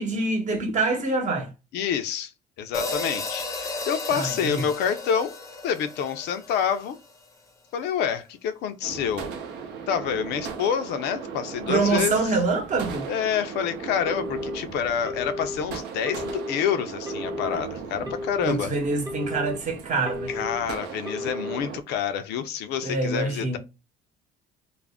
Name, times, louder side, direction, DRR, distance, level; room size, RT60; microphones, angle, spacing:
voice 1, 0.0-1.5 4.1-4.6 11.7-13.1 18.0-18.1 18.4-20.4 22.8-23.6, right 3 dB, 45° right, 0.8 m, -25 dB
voice 2, 1.7-2.3 2.6-5.3 5.6-7.0 7.7-9.3 9.9-12.2 13.1-18.7 20.3-23.6, left 8 dB, 80° left, 0.5 m, -27 dB
sound 1, 2.7-7.1, left 3 dB, 20° left, 0.5 m, -34 dB
sound 2, 8.8-21.8, right 5 dB, 85° right, 0.6 m, -37 dB
Telephone, 14.1-14.6 15.1-15.6 16.1-16.6 17.1-17.6 18.1-18.6 19.1-19.6 20.1-20.6 21.1-21.6, left 2 dB, 20° right, 0.6 m, -34 dB
2.4 x 2.0 x 3.4 m
cardioid pair, 110°, 17 cm